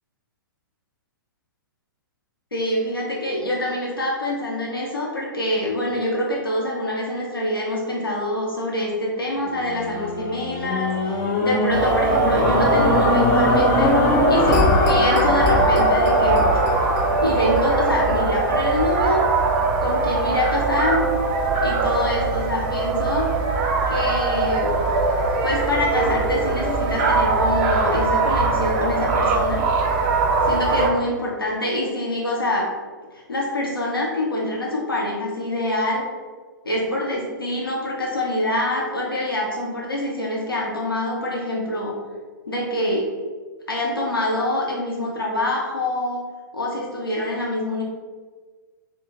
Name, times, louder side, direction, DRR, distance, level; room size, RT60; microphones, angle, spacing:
voice 1, 2.5-16.5 17.2-19.2 19.8-21.0 21.6-23.3 23.9-24.7 25.4-29.6 30.4-32.7 33.1-36.0 36.6-41.9 42.5-43.1 43.7-46.3 46.5-47.8, left 1 dB, 90° left, -3 dB, 0.5 m, -25 dB
sound 1, 9.4-19.7 20.3-20.4, left 2 dB, 25° left, 0.4 m, -22 dB
sound 2, 11.7-30.9, right 3 dB, 35° right, 0.4 m, -21 dB
2.7 x 2.2 x 3.1 m, 1.4 s
figure-of-eight pair, 110°, 12 cm